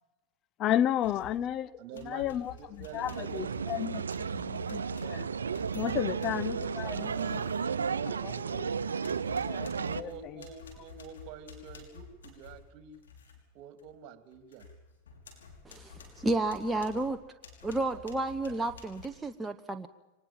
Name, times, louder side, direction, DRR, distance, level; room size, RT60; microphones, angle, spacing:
voice 1, 0.6-5.3 5.7-7.4 8.2-8.7 9.4-10.4, left 11 dB, 40° left, 0.7 m, -33 dB
sound 1, 1.0-1.5 1.9-8.7 9.0-13.4 13.8-13.9 14.3-19.1, left 5 dB, 85° left, 5.6 m, -51 dB
voice 2, 1.8-3.9 6.0-8.6 9.8-13.0 13.5-14.6 17.9-18.2, right 7 dB, 50° right, 3.0 m, -48 dB
sound 2, 2.9-10.0, right 6 dB, 90° right, 0.7 m, -33 dB
voice 3, 15.6-17.2 17.6-19.9, right 2 dB, 10° right, 1.0 m, -31 dB
24.0 x 19.5 x 7.4 m
hypercardioid pair, 100°, 0 cm